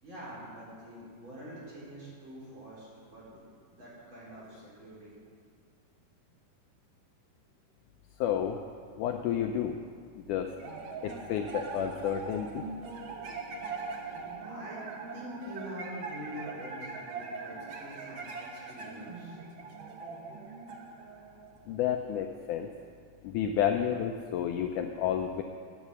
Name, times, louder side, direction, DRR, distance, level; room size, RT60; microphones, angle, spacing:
voice 1, 0.0-3.4 3.7-5.1 10.2-10.3 14.0-14.8 15.1-19.4 20.3-20.4, equal, 35° right, -7 dB, 5.1 m, -45 dB
voice 2, 8.2-8.6 9.0-9.8 10.2-10.5 11.0-12.6 21.7-22.7 23.2-25.4, left 9 dB, 80° left, 5 dB, 1.9 m, -30 dB
sound 1, 10.6-22.1, right 4 dB, 65° right, 1.2 m, -41 dB
17.0 x 9.2 x 6.3 m, 2.2 s
omnidirectional pair, 4.1 m